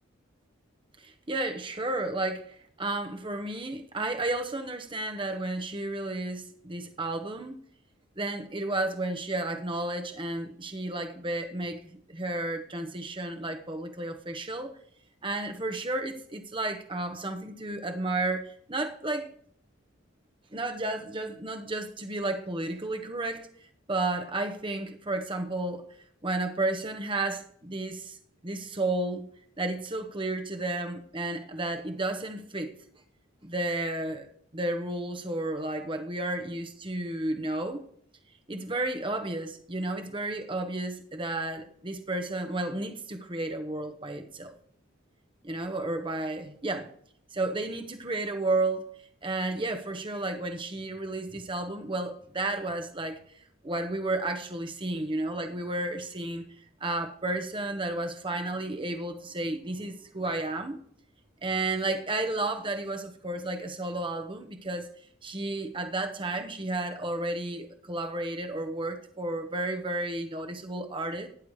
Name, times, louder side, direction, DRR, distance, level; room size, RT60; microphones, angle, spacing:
voice 1, 1.0-7.6 8.2-14.7 15.2-19.3 20.5-23.5 23.9-25.8 26.2-28.2 28.4-29.3 29.6-32.7 33.4-34.3 34.5-37.8 38.5-44.5 45.4-46.9 47.3-48.8 49.2-53.2 53.6-56.4 56.8-60.8 61.4-64.9 65.2-71.3, right 2 dB, 25° right, 5 dB, 1.1 m, -32 dB
17.5 x 10.5 x 3.2 m, 0.64 s
head